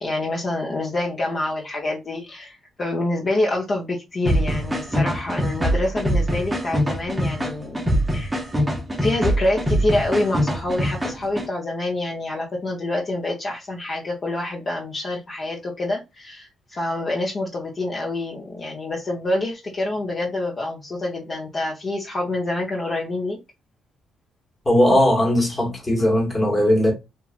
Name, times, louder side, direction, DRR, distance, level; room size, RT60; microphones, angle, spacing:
voice 1, 0.0-7.8 8.1-8.3 9.0-23.4, left 2 dB, 40° left, 0.6 m, -26 dB
sound 1, 4.3-11.5, equal, 10° right, 0.6 m, -23 dB
voice 2, 24.6-26.9, left 1 dB, 20° left, 1.1 m, -18 dB
2.9 x 2.2 x 2.4 m
cardioid pair, 90°, 0 cm